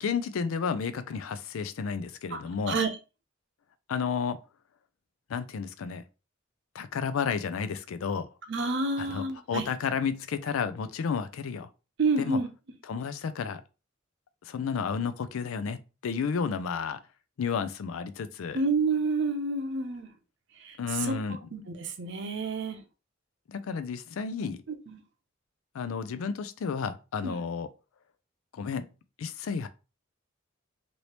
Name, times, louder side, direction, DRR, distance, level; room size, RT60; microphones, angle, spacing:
voice 1, 0.0-2.8 3.9-4.4 5.3-6.0 6.7-8.3 9.0-11.7 12.2-12.4 12.9-13.6 14.5-17.0 17.4-18.6 20.8-21.4 23.5-24.6 25.7-27.7 28.5-28.9 29.2-29.7, left 6 dB, 85° left, 0.4 m, -32 dB
voice 2, 8.5-9.7 12.0-12.5 18.5-20.1 20.6-21.2 21.5-22.8 24.7-25.0 27.2-27.4, right 3 dB, 60° right, 0.6 m, -29 dB
2.9 x 2.7 x 3.2 m
head